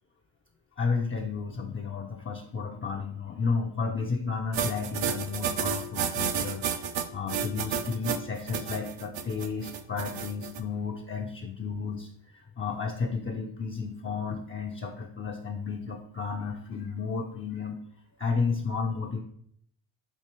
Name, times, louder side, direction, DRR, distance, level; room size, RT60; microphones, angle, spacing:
voice 1, 0.8-17.8 18.2-19.2, left 5 dB, 25° left, 0 dB, 0.5 m, -32 dB
sound 1, 4.5-10.6, right 7 dB, 60° right, 0.6 m, -31 dB
4.4 x 2.8 x 3.0 m, 0.67 s
supercardioid pair, 40°, 49 cm